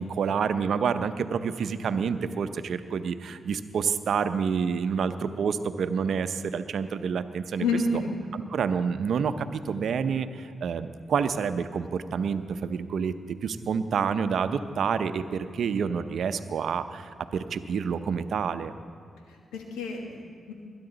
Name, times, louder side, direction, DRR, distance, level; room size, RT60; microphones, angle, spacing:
voice 1, 0.0-7.6 8.3-13.1 13.4-18.7, right 6 dB, 70° right, 10 dB, 0.6 m, -28 dB
voice 2, 7.6-8.1 19.3-20.5, left 3 dB, 90° left, 2 dB, 1.5 m, -29 dB
21.0 x 10.5 x 4.0 m, 2.3 s
supercardioid pair, 45°, 0 cm